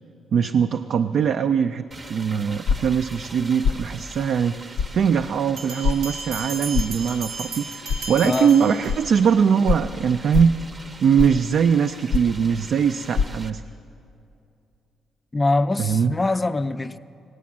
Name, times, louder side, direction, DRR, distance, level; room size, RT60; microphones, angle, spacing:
voice 1, 0.3-10.6 11.0-13.6 15.8-16.1, right 7 dB, 65° right, 0.4 m, -21 dB
sound 1, 1.9-13.5, right 2 dB, 30° right, 0.7 m, -43 dB
sound 2, 2.7-3.0 3.6-3.9 4.8-4.9 5.8-6.0 6.7-7.0 7.9-8.0 8.9-9.0 9.7-9.9 10.3-10.6 11.2-11.4 12.1-12.4 13.1-13.3, left 6 dB, 85° left, 0.4 m, -23 dB
sound 3, 5.6-9.3, right 3 dB, 85° right, 0.9 m, -35 dB
voice 2, 8.2-8.6 15.3-17.0, left 2 dB, 25° left, 0.4 m, -23 dB
18.0 x 8.5 x 7.3 m
cardioid pair, 85°, 0 cm